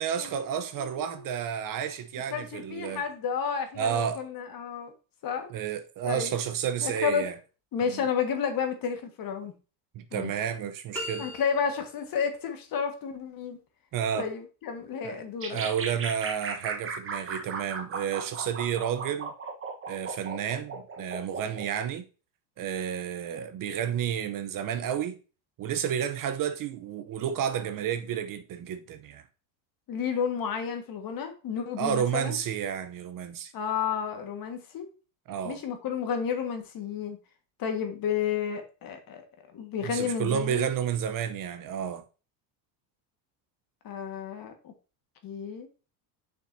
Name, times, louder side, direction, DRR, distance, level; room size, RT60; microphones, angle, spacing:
voice 1, 0.0-3.0 3.8-4.2 5.5-7.3 7.8-8.0 9.9-11.3 13.9-14.3 15.0-15.2 15.5-19.3 19.9-22.0 22.6-25.2 25.6-29.2 31.8-33.5 35.3-35.6 39.8-42.0, right 8 dB, 45° right, 0.8 m, -31 dB
voice 2, 0.8-1.3 2.3-4.9 5.2-5.5 6.0-6.3 6.8-7.3 7.7-9.5 10.1-10.3 11.2-13.6 14.1-15.6 29.9-32.4 33.5-34.9 35.4-37.2 37.6-39.2 39.5-40.7 43.8-44.7 45.2-45.7, left 7 dB, 45° left, 1.6 m, -31 dB
sound 1, 10.9-12.0, left 1 dB, 5° left, 2.5 m, -38 dB
sound 2, 15.4-21.7, right 4 dB, 25° right, 1.2 m, -36 dB
7.2 x 6.1 x 2.7 m
supercardioid pair, 115°, 48 cm